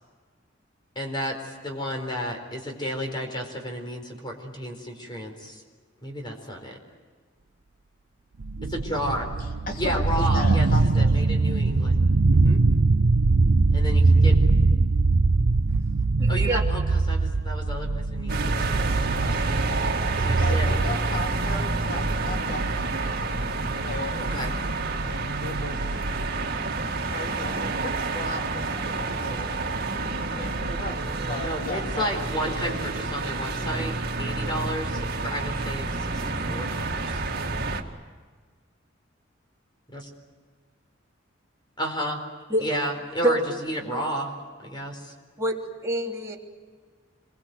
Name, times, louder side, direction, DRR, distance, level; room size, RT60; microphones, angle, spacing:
voice 1, 0.9-5.6 6.0-6.8 8.6-9.4 9.8-10.7 10.9-12.0 12.3-12.6 13.7-14.3 16.3-18.3 18.6-19.6 20.2-20.7 24.3-24.5 31.4-37.2 39.9-40.1 41.8-42.2 42.6-44.4 44.6-45.1, equal, 25° left, 3 dB, 4.4 m, -32 dB
sound 1, 8.4-26.3, right 3 dB, 85° right, 0.7 m, -23 dB
voice 2, 9.7-11.2 20.4-24.3 25.0-25.8 27.0-29.5 30.3-32.8, left 1 dB, 45° left, 3 dB, 3.1 m, -36 dB
voice 3, 16.2-16.6 42.5-42.7 43.2-44.0 45.4-46.4, right 1 dB, 15° right, -2 dB, 3.2 m, -27 dB
sound 2, 18.3-37.8, right 3 dB, 55° right, 2.1 m, -29 dB
27.5 x 23.0 x 8.0 m, 1.5 s
head